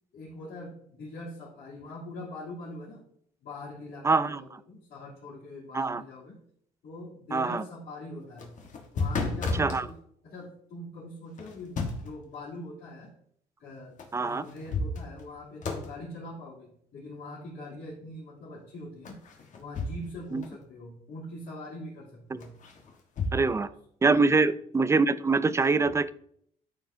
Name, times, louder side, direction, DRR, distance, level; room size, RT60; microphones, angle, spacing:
voice 1, 0.1-3.0 3.4-6.4 6.8-8.6 8.9-9.9 10.2-13.1 13.6-19.2 19.6-22.5 23.3-23.7, left 1 dB, 70° left, -10 dB, 3.1 m, -43 dB
voice 2, 4.0-4.4 5.7-6.0 7.3-7.6 9.5-9.9 14.1-14.4 20.3-20.4 22.3-22.4 23.3-23.7 24.0-26.1, right 4 dB, 15° right, 15 dB, 0.3 m, -24 dB
sound 1, 8.2-9.8 11.4-12.2 14.0-14.1 14.5-15.3 15.6-16.0 19.0-20.2 20.4-20.5 22.4-23.4, left 3 dB, 45° left, 1.4 m, -32 dB
12.5 x 4.5 x 2.7 m, 0.66 s
cardioid pair, 110°, 17 cm